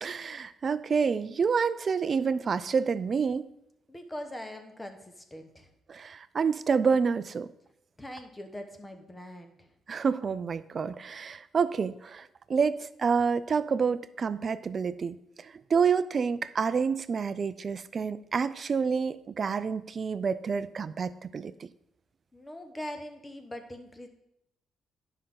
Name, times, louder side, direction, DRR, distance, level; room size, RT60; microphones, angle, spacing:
voice 1, 0.0-3.5 5.9-7.5 9.9-21.7, right 5 dB, 45° right, 15 dB, 0.4 m, -28 dB
voice 2, 3.9-5.7 8.0-9.7 22.3-24.1, left 1 dB, 15° left, 6 dB, 1.1 m, -42 dB
10.0 x 5.4 x 3.8 m, 0.81 s
cardioid pair, 90°, 0 cm